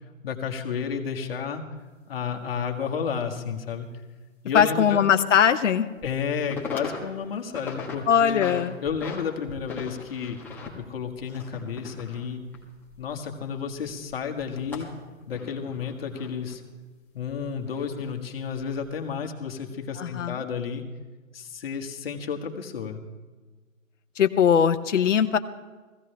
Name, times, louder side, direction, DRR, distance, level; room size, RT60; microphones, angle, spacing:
voice 1, 0.2-1.6 2.1-3.9 4.4-5.0 6.0-10.4 10.8-12.4 13.0-14.9 15.3-16.6 17.1-20.8 21.3-23.0, left 6 dB, 45° left, 3 dB, 1.6 m, -31 dB
sound 1, 1.8-1.9 2.3-2.4 4.6-4.7 5.2-5.3 5.8-6.2 6.4-7.0 7.3-8.0 8.3-9.2 9.5-13.5 13.7-16.6 17.3-18.1 18.6-18.9, left 5 dB, 5° left, 1.2 m, -39 dB
voice 2, 4.5-5.9 8.1-8.7 20.0-20.4 24.2-25.4, left 8 dB, 65° left, 9 dB, 0.8 m, -20 dB
17.0 x 15.5 x 3.3 m, 1.3 s
hypercardioid pair, 150°, 40 cm